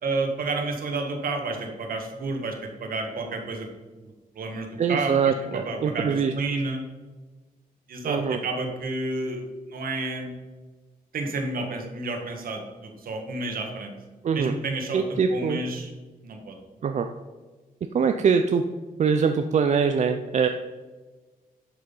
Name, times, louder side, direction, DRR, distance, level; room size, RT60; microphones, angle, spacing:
voice 1, 0.0-3.7 4.0-6.8 7.9-9.4 9.7-10.4 11.1-13.9 14.3-15.9 16.2-16.6, right 3 dB, 70° right, 3 dB, 1.8 m, -30 dB
voice 2, 4.8-6.3 8.0-8.4 14.2-14.5 14.9-15.6 16.8-17.1 17.9-18.6 19.0-20.5, right 6 dB, 50° right, 7 dB, 0.5 m, -23 dB
11.0 x 6.3 x 5.6 m, 1.3 s
wide cardioid pair, 155°, 15 cm